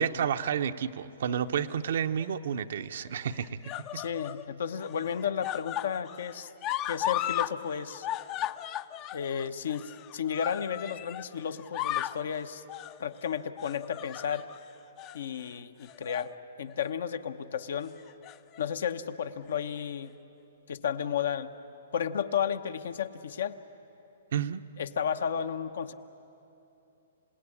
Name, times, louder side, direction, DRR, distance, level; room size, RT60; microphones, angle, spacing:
voice 1, 0.0-3.6 3.9-4.0 24.3-24.6, right 8 dB, 65° right, 9 dB, 0.8 m, -30 dB
sound 1, 1.7-2.3 3.2-4.4 4.8-7.5 7.8-11.3 11.6-12.2 12.7-13.0 13.6-14.6 15.0-15.2 15.8-16.3 16.7-16.9 18.0-18.6 19.5-19.6, left 13 dB, 30° left, 0.6 m, -36 dB
voice 2, 3.9-6.5 6.9-8.1 9.1-12.6 13.0-14.5 15.1-17.9 18.6-20.2 20.7-21.5 21.9-23.6 24.8-25.9, left 8 dB, 70° left, 9 dB, 1.0 m, -33 dB
27.5 x 17.5 x 9.9 m, 2.9 s
hypercardioid pair, 140°, 0 cm